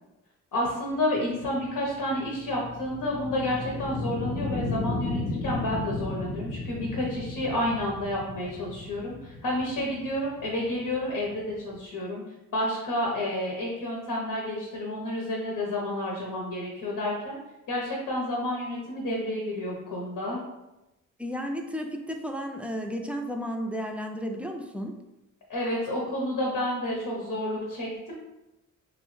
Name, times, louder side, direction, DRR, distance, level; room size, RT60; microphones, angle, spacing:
voice 1, 0.5-12.2 12.5-17.4 17.7-20.4 25.5-28.1, left 1 dB, 85° left, -3 dB, 0.9 m, -30 dB
sound 1, 1.3-11.8, left 2 dB, 60° left, 0.5 m, -35 dB
voice 2, 21.2-25.0, equal, 5° right, 3 dB, 0.3 m, -33 dB
3.1 x 3.1 x 3.1 m, 0.96 s
cardioid pair, 95°, 33 cm